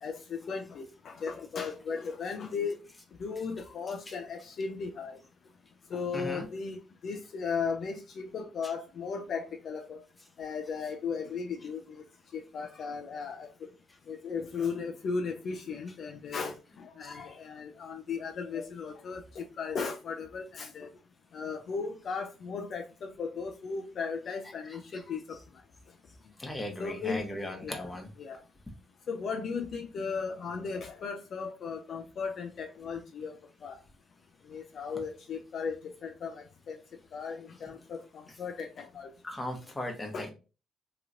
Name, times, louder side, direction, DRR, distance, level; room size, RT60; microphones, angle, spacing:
voice 1, 0.0-2.8 3.2-5.2 5.9-10.0 10.4-12.0 12.3-13.5 14.1-20.9 21.3-25.4 26.8-27.2 27.5-28.4 29.1-33.3 33.6-33.8 34.5-36.8 37.1-39.1 40.1-40.3, left 5 dB, 60° left, 0.4 m, -36 dB
voice 2, 6.1-6.5 17.0-17.1 26.4-28.1 39.2-40.3, left 1 dB, 15° left, 0.9 m, -37 dB
2.9 x 2.8 x 2.5 m
cardioid pair, 90°, 0 cm